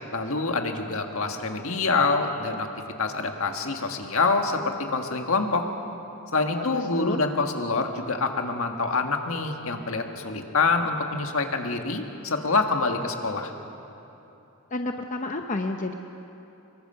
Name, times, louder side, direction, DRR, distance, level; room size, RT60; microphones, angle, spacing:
voice 1, 0.1-2.7 3.0-5.7 6.3-13.5, left 3 dB, 65° left, 4 dB, 1.7 m, -26 dB
voice 2, 6.5-7.2 14.7-15.9, left 2 dB, 35° left, 4 dB, 0.7 m, -30 dB
25.5 x 22.0 x 5.7 m, 2.9 s
head